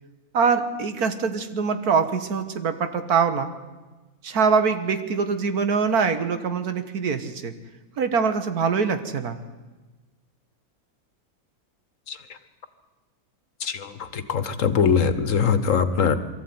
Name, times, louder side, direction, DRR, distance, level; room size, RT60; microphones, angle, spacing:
voice 1, 0.3-3.5 4.2-7.5 8.0-9.4, right 5 dB, 90° right, 9 dB, 1.9 m, -23 dB
voice 2, 13.6-16.2, left 6 dB, 60° left, 12 dB, 1.5 m, -22 dB
23.0 x 14.0 x 9.5 m, 1.2 s
omnidirectional pair, 1.6 m